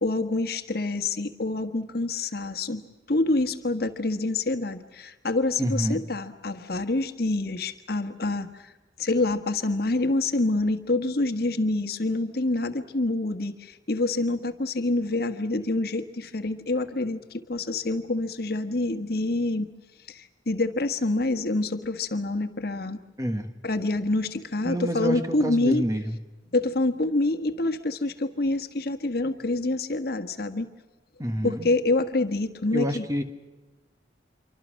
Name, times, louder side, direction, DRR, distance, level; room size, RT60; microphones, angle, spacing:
voice 1, 0.0-2.8 3.1-8.7 9.0-19.7 20.1-23.0 23.6-25.8 26.5-30.7 31.4-33.0, left 2 dB, 55° left, 8 dB, 1.4 m, -27 dB
voice 2, 5.6-6.0 23.2-23.5 24.6-26.2 31.2-31.7 32.7-33.2, equal, 20° right, 7 dB, 1.5 m, -28 dB
27.0 x 24.5 x 6.4 m, 1.2 s
head